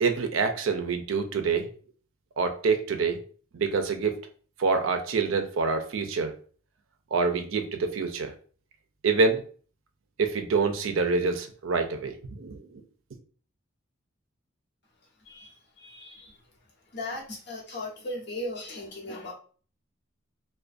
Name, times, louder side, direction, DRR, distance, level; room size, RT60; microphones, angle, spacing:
voice 1, 0.0-1.7 2.4-3.2 3.5-4.2 4.6-6.3 7.1-8.3 9.0-9.4 10.2-12.6, right 4 dB, 80° right, 6 dB, 0.4 m, -26 dB
voice 2, 15.2-16.3 16.9-19.3, left 1 dB, 55° left, -4 dB, 0.9 m, -37 dB
2.4 x 2.2 x 2.4 m, 0.42 s
head